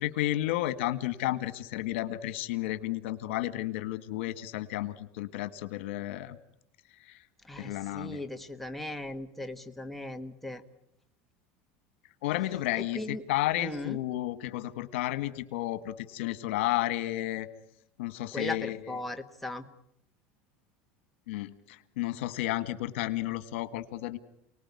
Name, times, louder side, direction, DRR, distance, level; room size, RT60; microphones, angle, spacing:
voice 1, 0.0-6.4 7.6-8.2 12.2-17.5 18.0-18.8 21.3-24.2, left 15 dB, 80° left, 13 dB, 1.6 m, -32 dB
voice 2, 7.4-10.6 12.8-13.2 13.6-14.0 18.3-19.7, left 1 dB, ahead, 5 dB, 1.4 m, -38 dB
29.0 x 19.5 x 9.7 m, 0.80 s
supercardioid pair, 135°, 6 cm